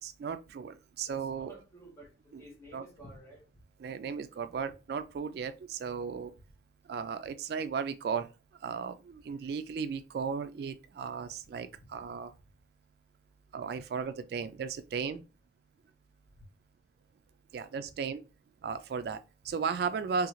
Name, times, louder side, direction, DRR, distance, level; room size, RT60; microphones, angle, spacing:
voice 1, 0.0-1.5 2.3-2.4 2.7-2.8 3.8-6.3 6.9-8.3 8.6-12.3 13.5-15.2 17.5-18.2 18.6-20.3, right 6 dB, 60° right, 0.3 m, -35 dB
voice 2, 1.1-3.4, right 1 dB, 15° left, 1.6 m, -52 dB
3.7 x 3.0 x 3.0 m
head